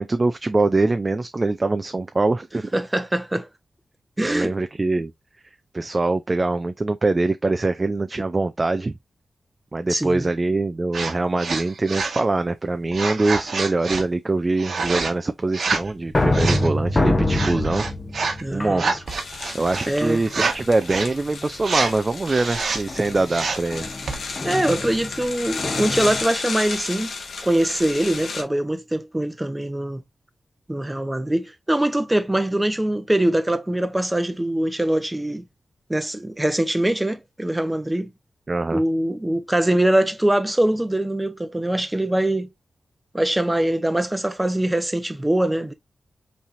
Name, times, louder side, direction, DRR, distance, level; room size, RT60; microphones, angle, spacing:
voice 1, 0.0-2.7 4.2-5.1 5.7-8.9 9.7-17.9 18.5-19.0 19.5-23.9 38.5-38.8, right 2 dB, 30° right, 0.5 m, -23 dB
voice 2, 2.7-3.5 4.2-4.5 9.9-10.3 18.4-18.9 19.5-19.6 19.9-20.2 24.4-27.1 27.4-30.0 30.7-35.4 35.9-38.1 38.7-42.5 43.1-45.7, right 1 dB, 15° right, 0.8 m, -23 dB
sound 1, 10.9-11.1 11.4-12.2 12.9-14.0 14.6-15.1 15.5-15.9 16.3-16.7 17.3-18.4 18.7-19.9 20.3-20.6 20.8-21.1 21.6-21.9 22.3-22.8 23.3-23.7 24.1-24.2, right 4 dB, 75° right, 1.3 m, -26 dB
sound 2, 15.7-19.4 20.0-20.6 21.0-21.4 22.9-26.3, left 1 dB, 25° left, 0.9 m, -26 dB
sound 3, 19.1-28.4, left 4 dB, 80° left, 1.1 m, -33 dB
5.6 x 3.3 x 2.6 m
wide cardioid pair, 90°, 0 cm